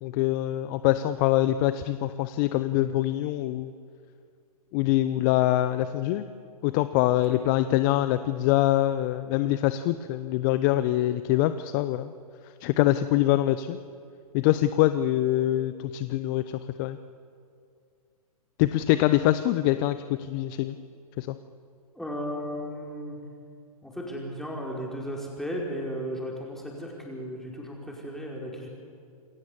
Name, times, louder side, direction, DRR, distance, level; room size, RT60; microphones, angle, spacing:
voice 1, 0.0-3.7 4.7-6.3 6.6-12.1 12.4-13.8 14.3-17.0 18.6-20.8 21.2-21.4, left 14 dB, 30° left, 12 dB, 0.7 m, -24 dB
voice 2, 22.0-23.2 23.8-28.7, equal, ahead, -2 dB, 5.2 m, -35 dB
28.0 x 21.0 x 7.2 m, 2.3 s
figure-of-eight pair, 120°, 20 cm